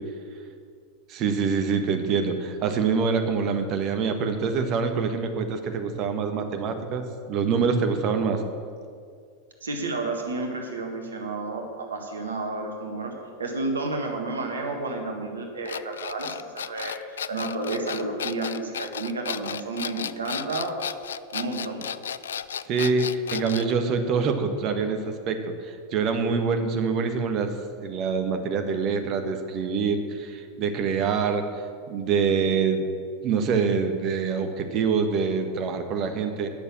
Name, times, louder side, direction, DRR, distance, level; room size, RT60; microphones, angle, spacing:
voice 1, 1.1-8.4 22.7-31.4 31.9-32.8 33.2-36.5, right 5 dB, 40° right, 7 dB, 1.3 m, -25 dB
voice 2, 9.6-16.9 17.3-20.8 21.3-21.9, right 2 dB, 75° right, 3 dB, 1.6 m, -31 dB
sound 1, 15.7-23.7, left 8 dB, 70° left, 0.3 m, -34 dB
10.0 x 6.8 x 8.6 m, 2.2 s
figure-of-eight pair, 85°, 0 cm